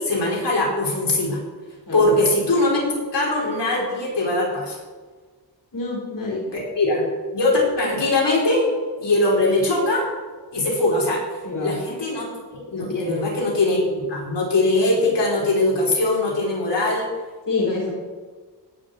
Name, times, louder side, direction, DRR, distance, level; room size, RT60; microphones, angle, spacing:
voice 1, 0.0-1.4 1.9-4.8 6.5-7.0 7.3-8.7 9.0-10.1 10.5-11.2 11.6-17.1, left 2 dB, 80° left, -2 dB, 5.4 m, -21 dB
voice 2, 5.7-6.4 11.4-11.7 12.7-13.3 17.5-17.9, left 3 dB, 50° left, -3 dB, 4.9 m, -27 dB
17.5 x 6.8 x 8.5 m, 1.5 s
wide cardioid pair, 105°, 41 cm